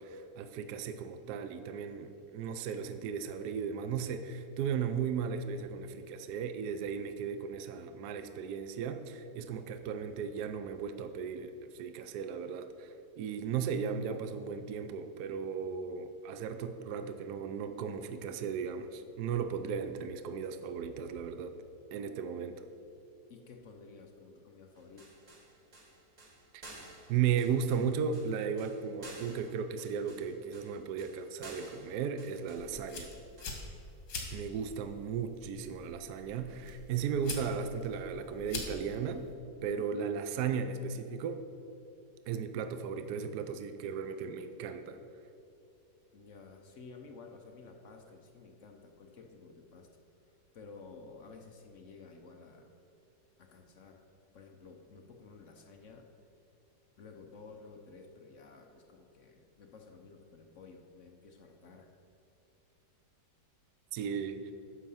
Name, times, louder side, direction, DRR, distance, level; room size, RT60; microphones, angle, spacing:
voice 1, 0.0-21.5 21.9-22.6 26.5-26.6 27.1-33.1 34.3-39.3 39.6-41.4 42.3-45.0 63.9-64.5, right 7 dB, 70° right, 8 dB, 1.1 m, -36 dB
voice 2, 23.3-25.2 46.1-49.9 50.2-52.7 53.4-54.1 54.3-56.1 57.0-61.9, left 4 dB, 55° left, 3 dB, 1.0 m, -53 dB
sound 1, 24.8-33.6, right 2 dB, 30° right, 1.0 m, -53 dB
sound 2, 32.6-39.4, left 3 dB, 85° left, 2.1 m, -45 dB
10.0 x 6.5 x 5.6 m, 2.8 s
omnidirectional pair, 1.9 m